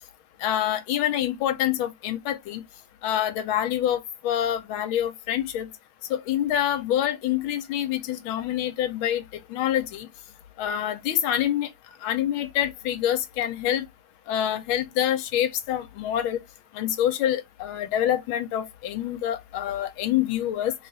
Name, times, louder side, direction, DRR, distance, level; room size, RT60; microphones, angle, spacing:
voice 1, 0.4-2.6 3.0-5.7 6.1-9.2 9.5-10.1 10.6-11.7 12.0-13.8 14.3-16.4 16.7-20.7, left 11 dB, 75° left, 1.4 m, -26 dB
3.5 x 2.4 x 3.9 m
omnidirectional pair, 2.4 m